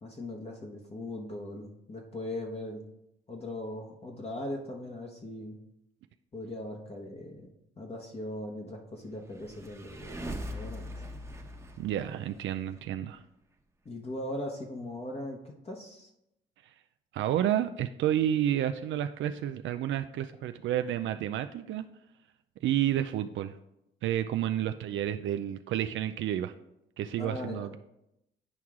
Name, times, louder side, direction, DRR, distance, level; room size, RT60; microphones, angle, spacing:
voice 1, 0.0-2.8 3.3-5.6 6.3-7.5 7.8-11.1 13.8-16.1 27.2-27.7, left 1 dB, 30° left, 0 dB, 1.1 m, -39 dB
sound 1, 9.2-12.8, equal, 15° right, 1.1 m, -41 dB
voice 2, 11.8-13.2 17.1-21.8 22.6-23.5 24.0-26.5 27.0-27.8, right 11 dB, 70° right, 8 dB, 0.4 m, -30 dB
9.7 x 4.6 x 3.7 m, 0.84 s
cardioid pair, 90°, 20 cm